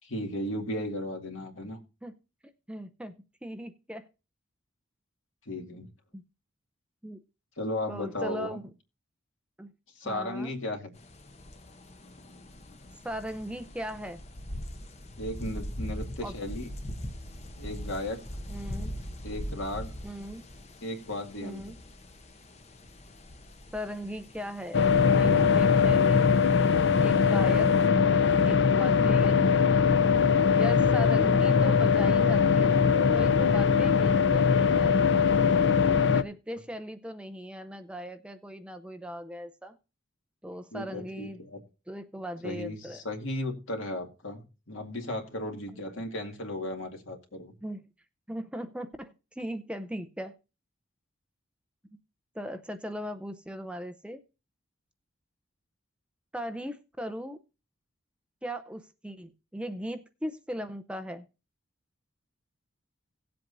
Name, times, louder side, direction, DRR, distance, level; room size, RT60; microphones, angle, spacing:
voice 1, 0.0-1.8 5.5-5.9 7.6-8.6 10.0-10.9 15.2-16.7 17.6-18.2 19.2-19.9 20.8-21.6 40.7-41.6 42.4-47.5, left 1 dB, 85° left, 2.2 m, -35 dB
voice 2, 2.4-3.1 3.4-4.0 6.1-6.2 7.0-7.2 7.9-8.6 9.6-9.7 10.0-10.5 13.0-14.2 16.2-16.4 18.5-19.0 20.0-20.4 21.4-21.8 23.7-26.3 27.0-27.7 28.4-29.7 30.6-35.0 35.9-39.7 40.4-41.4 41.9-43.0 45.7-45.8 47.6-47.8 48.3-50.3 52.3-54.2 56.3-57.4 58.4-61.3, equal, 5° right, 0.6 m, -38 dB
sound 1, 11.0-27.9, equal, 35° left, 0.8 m, -42 dB
sound 2, 24.7-36.2, left 6 dB, 60° left, 0.5 m, -22 dB
18.0 x 7.7 x 2.6 m
head